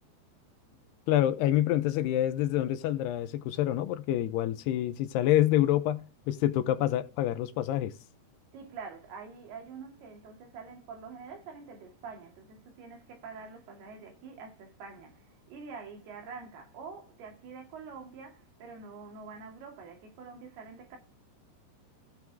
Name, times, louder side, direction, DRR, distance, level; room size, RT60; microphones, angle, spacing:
voice 1, 1.1-7.9, left 13 dB, 85° left, 2.8 m, -27 dB
voice 2, 8.5-21.0, right 5 dB, 70° right, 4.4 m, -46 dB
16.0 x 6.1 x 3.5 m
omnidirectional pair, 4.7 m